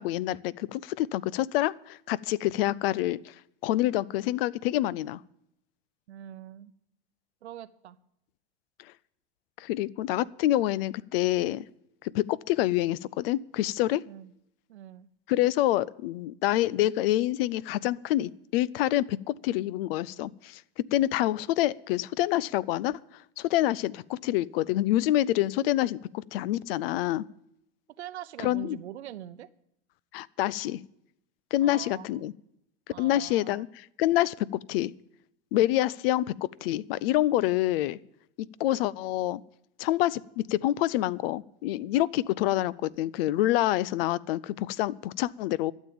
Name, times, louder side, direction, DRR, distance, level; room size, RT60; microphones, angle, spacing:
voice 1, 0.0-3.3 3.6-5.2 9.6-11.6 12.0-14.0 15.3-20.6 20.9-23.0 23.4-27.3 28.4-28.8 30.1-30.8 31.5-32.3 33.0-34.9 35.5-38.0 38.4-39.4 39.8-45.7, left 14 dB, 65° left, 22 dB, 0.5 m, -27 dB
voice 2, 6.1-6.7 7.4-8.0 14.1-14.3 14.7-15.1 28.0-29.5 31.6-32.3 32.9-33.7, right 11 dB, 85° right, 15 dB, 0.8 m, -43 dB
12.5 x 7.4 x 8.5 m, 0.78 s
hypercardioid pair, 100°, 32 cm